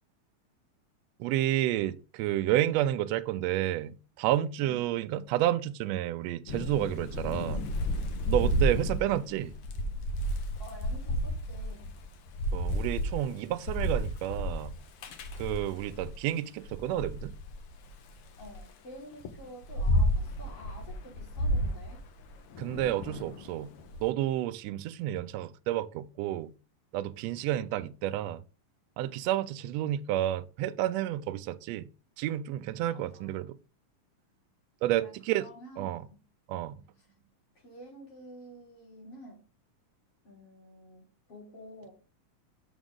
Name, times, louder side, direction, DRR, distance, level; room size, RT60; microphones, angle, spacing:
voice 1, 1.2-7.6 8.3-9.5 12.5-14.7 15.4-17.3 22.6-23.7 24.0-26.5 26.9-28.4 29.0-31.9 32.2-33.6 34.8-35.5 35.8-36.0 36.5-36.7, right 13 dB, 85° right, 1.5 m, -30 dB
voice 2, 4.6-4.9 8.3-8.5 10.6-11.9 18.4-22.0 32.8-33.4 35.0-36.2 37.0-37.1 37.6-39.4 40.2-41.9, equal, 50° left, 4.2 m, -49 dB
Thunder / Rain, 6.5-16.2 16.6-18.6 19.2-24.0, equal, 70° left, 1.4 m, -32 dB
6.3 x 6.1 x 3.7 m
omnidirectional pair, 3.5 m